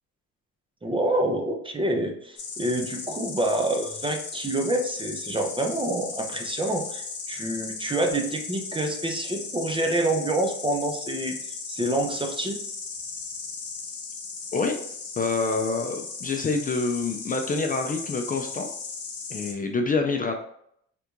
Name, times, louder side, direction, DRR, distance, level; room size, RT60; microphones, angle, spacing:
voice 1, 0.8-11.4 11.7-12.6, right 1 dB, 15° right, 3 dB, 0.6 m, -27 dB
Insect, 2.4-19.5, left 4 dB, 50° left, 1.0 m, -36 dB
voice 2, 15.2-18.7 19.3-20.3, left 3 dB, 30° left, 4 dB, 0.4 m, -26 dB
3.4 x 2.4 x 3.0 m, 0.69 s
cardioid pair, 90°, 30 cm